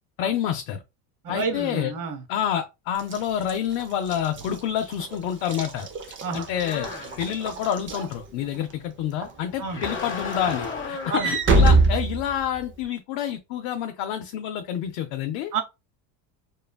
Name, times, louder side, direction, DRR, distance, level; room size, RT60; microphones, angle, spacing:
voice 1, 0.2-0.8 1.3-1.9 2.3-5.9 6.3-6.9 7.2-15.5, left 10 dB, 70° left, 0.6 m, -28 dB
voice 2, 1.2-2.2 6.2-6.5 9.6-9.8 11.1-11.3 15.5-15.6, right 4 dB, 40° right, 1.0 m, -29 dB
Walk footsteps / Slam, 3.0-8.7 9.2-9.5 9.8-12.8, right 2 dB, 25° right, 0.6 m, -25 dB
sound 1, 6.4-7.5 9.6-11.3, left 4 dB, 25° left, 1.1 m, -34 dB
3.1 x 2.2 x 2.2 m
supercardioid pair, 95°, 49 cm